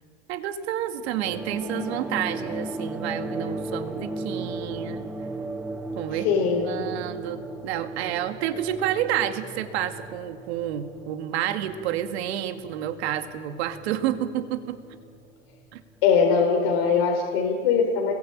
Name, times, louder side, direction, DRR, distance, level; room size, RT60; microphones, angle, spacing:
voice 1, 0.3-5.0 6.0-6.3 6.7-14.8 15.7-15.8, right 11 dB, 55° right, 8 dB, 2.2 m, -29 dB
sound 1, 1.0-15.9, right 2 dB, 5° right, 0.9 m, -36 dB
voice 2, 6.1-6.8 16.0-18.1, left 6 dB, 50° left, 1 dB, 4.1 m, -21 dB
30.0 x 22.0 x 8.9 m, 2.1 s
supercardioid pair, 160°, 37 cm